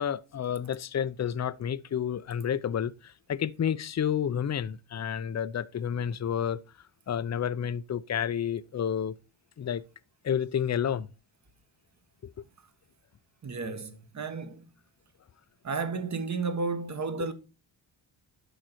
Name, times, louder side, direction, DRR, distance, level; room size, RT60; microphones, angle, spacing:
voice 1, 0.0-6.6 7.1-9.2 9.6-9.8 10.2-11.1 12.2-12.3, left 8 dB, 35° left, 0.6 m, -30 dB
voice 2, 13.4-14.6 15.6-17.3, right 4 dB, 35° right, 1.4 m, -32 dB
11.5 x 3.9 x 4.5 m
cardioid pair, 60°, 47 cm